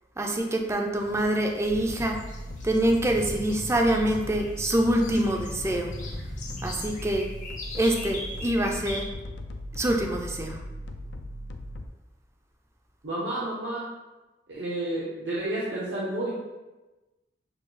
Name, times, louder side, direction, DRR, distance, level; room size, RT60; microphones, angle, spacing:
voice 1, 0.2-2.2 2.6-5.9 6.6-7.3 7.7-9.1 9.7-10.6, right 1 dB, 15° right, 2 dB, 0.4 m, -25 dB
sound 1, 1.0-9.0, left 2 dB, 45° left, 0.8 m, -40 dB
sound 2, 1.6-11.9, left 1 dB, 70° left, 0.4 m, -38 dB
voice 2, 13.0-13.9 14.5-16.3, right 1 dB, 75° right, -7 dB, 0.8 m, -30 dB
6.4 x 2.3 x 3.2 m, 1.1 s
head